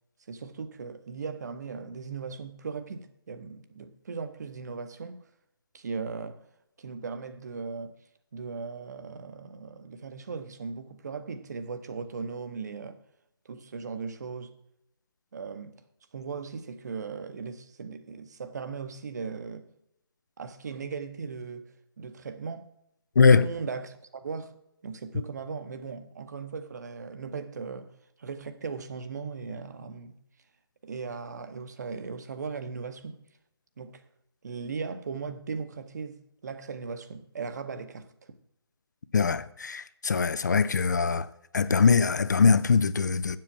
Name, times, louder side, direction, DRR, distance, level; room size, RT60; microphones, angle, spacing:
voice 1, 0.3-5.2 5.7-6.4 6.8-7.9 8.3-13.0 13.4-14.5 15.3-15.7 16.1-19.6 20.4-22.7 23.3-27.9 28.2-30.2 30.8-33.2 33.8-34.0 34.4-38.1, right 5 dB, 40° right, 0.8 m, -38 dB
voice 2, 23.2-23.5 39.1-41.3 41.5-43.4, left 5 dB, 45° left, 0.4 m, -22 dB
7.6 x 7.3 x 7.1 m
figure-of-eight pair, 160°, 14 cm